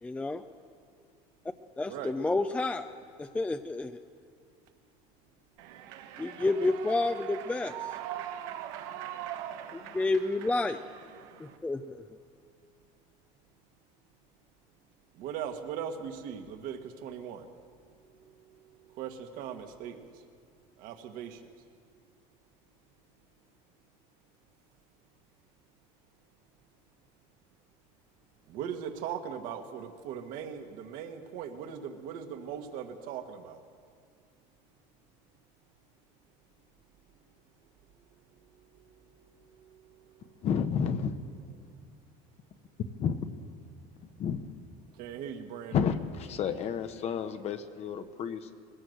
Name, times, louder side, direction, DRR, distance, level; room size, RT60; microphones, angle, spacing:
voice 1, 0.0-0.4 1.8-2.9 3.2-4.0 6.2-7.7 9.7-10.8 11.4-12.0, left 2 dB, 10° left, 9 dB, 0.5 m, -30 dB
Human voice / Clapping / Cheering, 5.6-11.6, right 11 dB, 85° right, 1.3 m, -41 dB
voice 2, 15.2-17.4 19.0-20.1 20.8-21.4 28.5-33.6 45.0-45.8, right 8 dB, 65° right, 6 dB, 1.6 m, -39 dB
voice 3, 40.4-41.1 43.0-43.2 44.0-44.5 45.7-48.6, left 7 dB, 45° left, 8 dB, 1.0 m, -31 dB
20.5 x 16.5 x 7.8 m, 2.2 s
cardioid pair, 140°, 15 cm